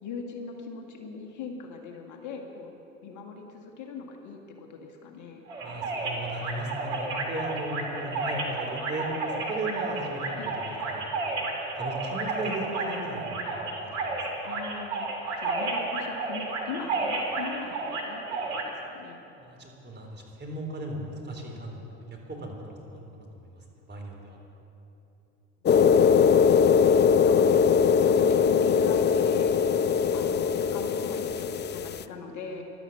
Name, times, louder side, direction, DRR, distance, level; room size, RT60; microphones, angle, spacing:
voice 1, 0.0-2.7 3.0-5.4 10.4-10.6 14.4-15.1 15.4-18.2 18.5-19.2 27.2-29.5 30.1-32.6, left 4 dB, 55° left, 3 dB, 2.0 m, -40 dB
sound 1, 5.5-18.6, right 3 dB, 80° right, 2.4 m, -32 dB
voice 2, 5.6-9.1 9.5-10.6 10.9-11.4 11.8-14.2 19.4-22.0 22.3-23.3 23.9-24.4, right 1 dB, 30° right, 0 dB, 3.8 m, -36 dB
sound 2, 25.7-32.0, left 7 dB, 30° left, 0.5 m, -21 dB
13.0 x 12.0 x 7.9 m, 2.9 s
hypercardioid pair, 65°, 36 cm